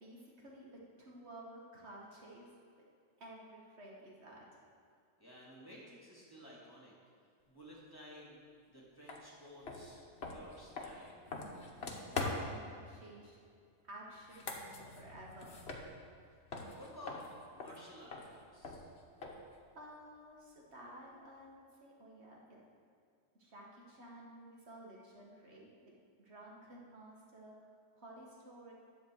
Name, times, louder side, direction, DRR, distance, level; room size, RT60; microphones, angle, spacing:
voice 1, 0.0-2.5 3.2-4.6 11.7-13.4 13.8-15.6 19.7-22.6 23.4-25.9 26.2-27.6 28.0-28.7, right 1 dB, 55° right, -3 dB, 1.5 m, -53 dB
voice 2, 5.2-6.9 7.5-8.4 8.7-10.0 10.3-11.2 16.7-17.2 17.5-18.9, equal, 15° left, -5 dB, 1.9 m, -54 dB
sound 1, 9.1-9.2 9.6-12.7 14.2-16.2 16.5-19.6, left 3 dB, 55° left, 1.2 m, -43 dB
10.5 x 4.4 x 7.5 m, 2.3 s
omnidirectional pair, 1.3 m